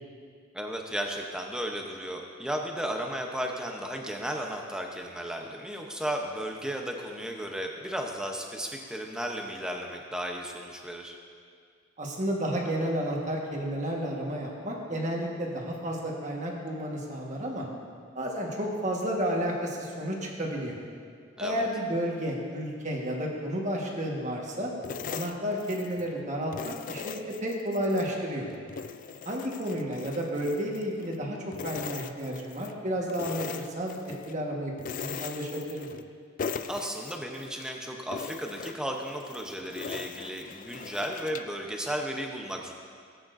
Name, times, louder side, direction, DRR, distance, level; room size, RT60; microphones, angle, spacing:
voice 1, 0.5-11.2 21.4-21.7 36.7-42.7, equal, 5° right, 1 dB, 0.8 m, -34 dB
voice 2, 12.0-17.7 18.1-20.8 21.4-24.7 25.1-28.5 29.2-31.4 31.6-34.0 34.3-34.7 35.0-35.9, equal, 35° right, -1 dB, 1.4 m, -31 dB
sound 1, 24.8-26.1 26.5-28.1 28.5-31.2 31.5-32.8 33.1-34.4 34.8-36.1 36.4-37.7 38.1-41.6, left 6 dB, 40° left, 0.3 m, -40 dB
18.5 x 8.7 x 2.6 m, 2.1 s
head